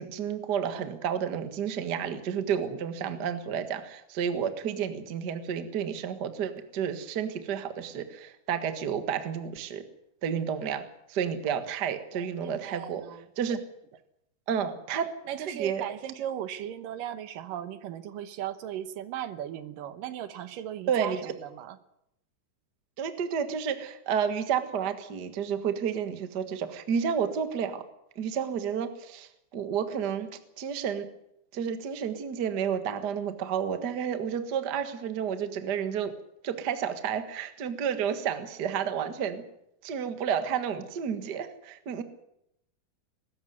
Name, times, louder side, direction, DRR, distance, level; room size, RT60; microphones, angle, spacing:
voice 1, 0.0-9.8 10.2-13.0 13.4-13.6 14.5-15.1 15.5-15.8 20.9-21.3 23.0-27.8 28.1-30.3 30.6-31.1 31.5-36.1 36.4-39.4 39.8-42.0, right 7 dB, 85° right, 9 dB, 0.9 m, -31 dB
voice 2, 12.1-13.2 15.3-21.8, right 10 dB, 70° right, 12 dB, 2.3 m, -37 dB
22.5 x 13.5 x 9.4 m, 0.79 s
omnidirectional pair, 4.7 m